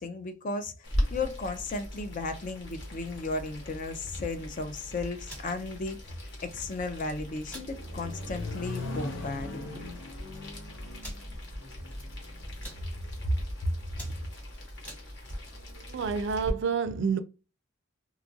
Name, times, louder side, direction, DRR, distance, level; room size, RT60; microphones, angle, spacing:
voice 1, 0.0-6.0 6.4-9.8 13.6-13.7 14.0-14.1, left 3 dB, 40° left, 0.4 m, -35 dB
Boiling, 0.8-16.5, equal, 65° left, 1.1 m, -40 dB
sound 1, 5.3-5.5 6.7-7.1 7.5-7.7 8.2-8.3 8.7-8.9 9.7-9.8 10.0-10.1 11.0-11.3 11.9-12.2 12.5-12.8 13.4-13.6 13.9-15.0, equal, 10° left, 1.1 m, -46 dB
Accelerating revving vroom, 7.1-13.1, left 2 dB, 80° left, 0.8 m, -41 dB
voice 2, 15.5-17.2, right 6 dB, 65° right, 0.4 m, -29 dB
2.9 x 2.4 x 2.6 m
head